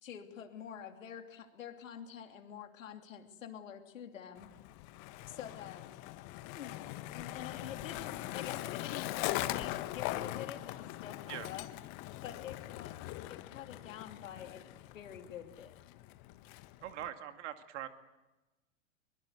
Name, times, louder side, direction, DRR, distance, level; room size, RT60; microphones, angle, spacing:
voice 1, 0.0-4.5 5.3-5.9 6.5-6.9 7.1-11.7 12.2-13.0 13.3-15.8, left 9 dB, 75° left, 5 dB, 3.0 m, -47 dB
Skateboard, 4.4-17.1, left 16 dB, 45° left, 1.4 m, -41 dB
voice 2, 16.8-17.9, right 11 dB, 60° right, 8 dB, 2.3 m, -42 dB
23.5 x 22.5 x 8.1 m, 1.1 s
hypercardioid pair, 105°, 40 cm